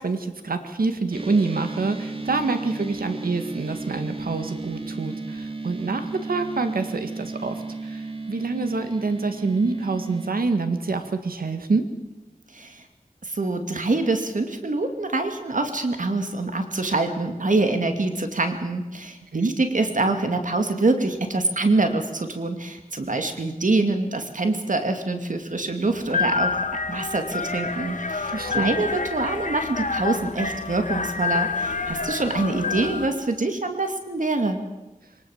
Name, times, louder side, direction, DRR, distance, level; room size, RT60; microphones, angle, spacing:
voice 1, 0.0-11.8 19.3-19.5 28.3-28.8, right 3 dB, 90° right, 8 dB, 1.8 m, -26 dB
sound 1, 1.1-10.3, right 3 dB, 40° right, 2.2 m, -34 dB
voice 2, 12.5-12.8 13.2-26.6 26.9-34.6, right 2 dB, 60° right, 6 dB, 2.4 m, -25 dB
sound 2, 25.9-33.1, left 5 dB, 60° left, 1.8 m, -28 dB
23.0 x 19.5 x 7.2 m, 1.1 s
wide cardioid pair, 65°, 15 cm